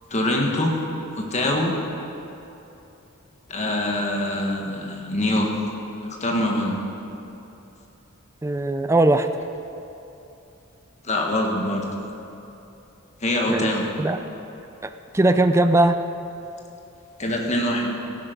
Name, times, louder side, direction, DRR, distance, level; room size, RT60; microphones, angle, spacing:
voice 1, 0.1-0.7 1.2-1.7 3.5-5.5 6.0-6.8 11.0-11.8 13.2-13.9 17.2-18.0, left 1 dB, 35° left, 0 dB, 1.6 m, -24 dB
voice 2, 8.4-9.3 13.5-14.2 14.8-16.0, right 2 dB, 15° right, 9 dB, 0.4 m, -20 dB
14.0 x 10.5 x 5.2 m, 2.9 s
head